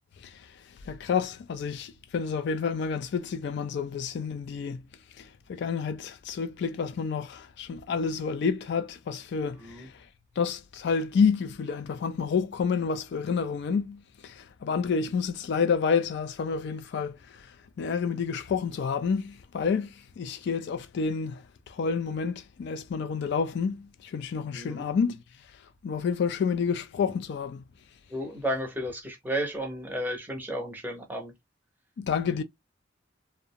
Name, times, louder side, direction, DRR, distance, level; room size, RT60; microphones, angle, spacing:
voice 1, 0.2-4.8 5.1-10.1 10.4-25.2 25.5-27.6 32.0-32.4, left 5 dB, 65° left, 0.3 m, -29 dB
voice 2, 24.5-24.9 28.1-31.3, equal, 10° right, 0.7 m, -33 dB
2.5 x 2.0 x 2.7 m
head